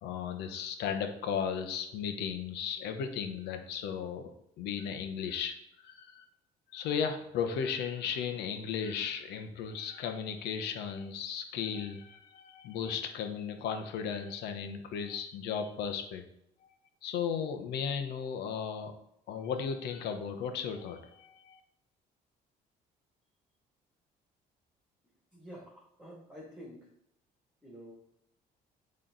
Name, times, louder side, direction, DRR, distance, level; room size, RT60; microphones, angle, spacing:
voice 1, 0.0-6.2 6.7-16.3 16.6-16.7 17.0-18.9 19.3-21.6, left 7 dB, 80° left, 6 dB, 1.0 m, -35 dB
voice 2, 25.3-26.9 27.6-28.2, equal, 5° right, -7 dB, 2.5 m, -49 dB
8.5 x 3.3 x 3.9 m, 0.78 s
cardioid pair, 110°, 17 cm